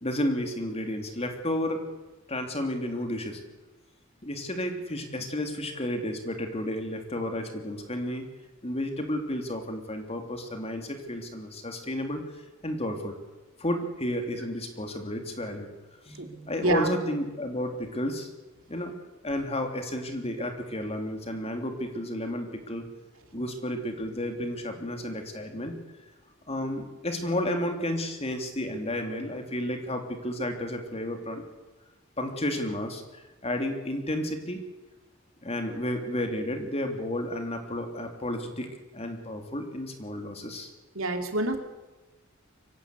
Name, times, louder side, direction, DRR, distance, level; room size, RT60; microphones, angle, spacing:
voice 1, 0.0-1.8 2.3-3.4 4.2-8.3 8.6-12.2 12.6-13.2 13.6-15.7 16.0-18.3 18.7-18.9 19.2-22.8 23.3-25.8 26.5-31.4 32.2-34.6 35.4-38.7 38.9-40.7, left 1 dB, 30° left, 5 dB, 3.2 m, -32 dB
voice 2, 16.6-16.9 40.9-41.6, right 2 dB, 80° right, 5 dB, 2.9 m, -26 dB
24.0 x 17.0 x 8.3 m, 1.1 s
head